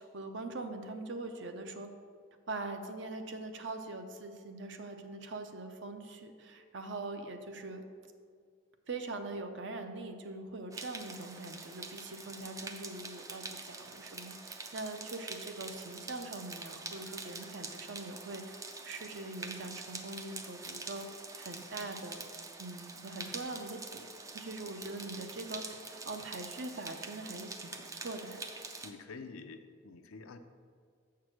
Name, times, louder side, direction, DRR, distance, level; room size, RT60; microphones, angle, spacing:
voice 1, 0.0-1.9 2.5-7.8 8.9-18.6 18.8-21.1 21.4-22.2 22.6-24.1 24.3-28.5, right 2 dB, 60° right, 7 dB, 0.6 m, -42 dB
sound 1, 10.7-28.9, right 3 dB, 15° right, 0.3 m, -45 dB
voice 2, 28.8-30.4, left 4 dB, 85° left, 8 dB, 0.5 m, -48 dB
7.2 x 4.7 x 6.2 m, 2.1 s
head